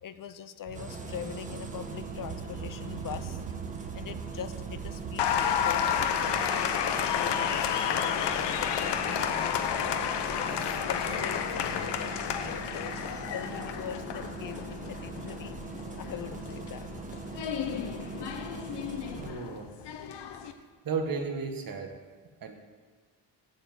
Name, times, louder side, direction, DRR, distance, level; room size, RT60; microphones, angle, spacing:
voice 1, 0.0-3.5 3.9-5.8 6.2-6.7 7.1-9.8 10.4-15.6 16.0-16.9, left 9 dB, 50° left, 12 dB, 0.5 m, -42 dB
Engine starting, 0.7-19.3, right 3 dB, 20° right, 1.1 m, -41 dB
sound 1, 0.7-6.1, right 10 dB, 85° right, 0.7 m, -42 dB
Applause, 5.2-20.5, left 8 dB, 70° left, 0.9 m, -31 dB
voice 2, 19.2-19.7 20.8-21.9 22.4-22.6, right 5 dB, 50° right, 5 dB, 1.4 m, -33 dB
8.0 x 7.0 x 7.7 m, 1.5 s
cardioid pair, 105°, 43 cm